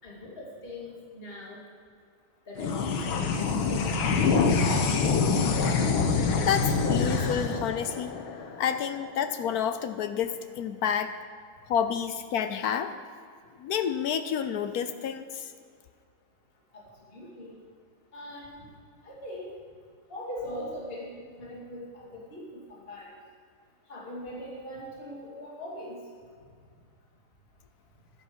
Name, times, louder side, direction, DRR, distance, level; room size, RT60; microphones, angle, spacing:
voice 1, 0.0-1.6 2.5-3.9 16.7-16.8 17.1-17.6 18.1-18.7 19.0-19.5 20.1-23.1 23.9-26.0, left 1 dB, 30° left, -4 dB, 2.5 m, -41 dB
sound 1, 2.6-9.3, left 4 dB, 90° left, 1.9 m, -26 dB
voice 2, 6.4-8.1 8.6-11.1 11.7-12.9 13.6-15.5, left 8 dB, 65° left, 9 dB, 1.0 m, -29 dB
12.0 x 10.5 x 6.4 m, 2.1 s
omnidirectional pair, 2.2 m